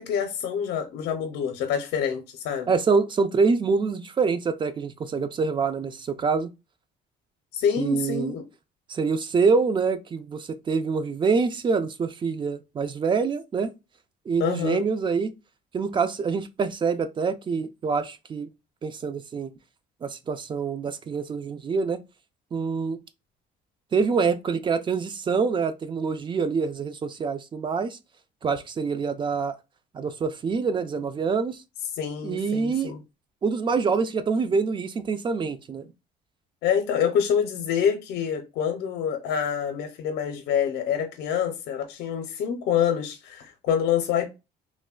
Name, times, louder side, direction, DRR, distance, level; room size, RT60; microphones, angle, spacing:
voice 1, 0.0-2.7 7.5-8.4 14.4-14.8 32.0-33.0 36.6-44.3, left 8 dB, 80° left, 0.5 m, -26 dB
voice 2, 2.7-6.5 7.8-8.3 8.9-13.7 14.3-15.3 15.7-18.5 18.8-19.5 20.0-22.0 22.5-23.0 23.9-28.0 28.4-29.5 29.9-31.6 32.2-32.9 33.4-35.9, right 5 dB, 30° right, 0.3 m, -25 dB
3.1 x 2.1 x 2.3 m
cardioid pair, 110°, 17 cm